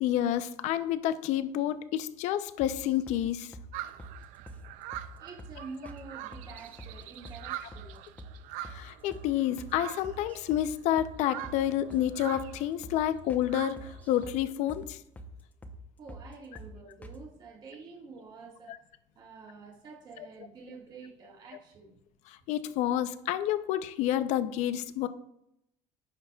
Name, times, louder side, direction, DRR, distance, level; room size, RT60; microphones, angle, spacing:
voice 1, 0.0-3.5 8.6-15.0 18.7-18.8 22.3-25.1, left 12 dB, 65° left, 12 dB, 0.5 m, -29 dB
sound 1, 2.6-3.2 3.5-3.7 4.0-4.2 4.5-4.6 4.9-5.1 5.4-5.6 5.9-6.0 6.3-7.0 7.3-7.4 7.7-7.9 8.2-8.3 8.6-8.8 9.1-9.3 9.6-9.7 10.0-10.7 11.0-11.1 11.4-11.6 11.9-12.1 12.4-12.5 12.8-13.0 13.3-13.5 13.8-14.4 14.7-14.9 15.2-15.3 15.6-15.8 16.1-16.3 16.6-16.7 17.0-17.2, right 2 dB, 10° left, 0.7 m, -45 dB
sound 2, 3.7-14.3, right 14 dB, 80° right, 0.5 m, -44 dB
voice 2, 5.2-8.0 16.0-18.8 19.1-21.9, right 4 dB, 35° right, -2 dB, 1.6 m, -47 dB
15.0 x 5.9 x 2.3 m, 0.80 s
cardioid pair, 165°, 13 cm